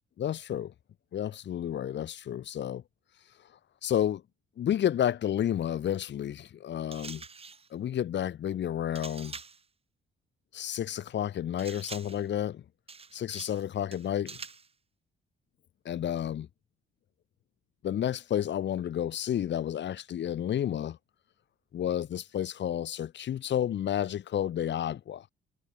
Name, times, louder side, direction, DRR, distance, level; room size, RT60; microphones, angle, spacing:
voice 1, 0.2-0.7 1.1-2.8 3.8-4.2 4.6-7.2 7.7-9.4 10.5-12.6 13.1-14.4 15.8-16.5 17.8-21.0 21.7-25.3, left 10 dB, 60° left, 2.2 m, -31 dB
sound 1, 6.9-7.7 8.9-9.6 11.6-12.3 12.9-13.6 13.9-14.7, right 5 dB, 30° right, 5.9 m, -45 dB
cardioid pair, 140°, 21 cm